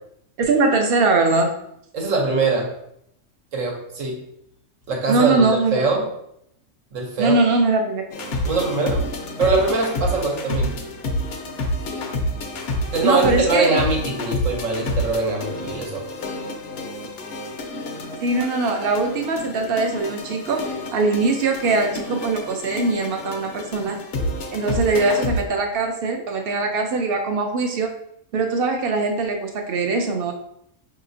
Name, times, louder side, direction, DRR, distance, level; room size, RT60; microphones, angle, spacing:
voice 1, 0.4-1.5 5.1-5.7 7.2-8.0 13.0-13.8 18.2-24.0 24.5-27.9 28.3-30.3, right 3 dB, 60° right, 3 dB, 0.6 m, -21 dB
voice 2, 1.9-2.7 3.5-4.3 4.9-5.4 5.7-6.1 6.9-7.4 8.4-9.1 9.4-10.8 12.9-16.0, right 3 dB, 80° right, -1 dB, 1.2 m, -22 dB
sound 1, 8.1-25.4, left 1 dB, 60° left, 0.7 m, -29 dB
4.8 x 2.9 x 2.6 m, 0.74 s
omnidirectional pair, 1.3 m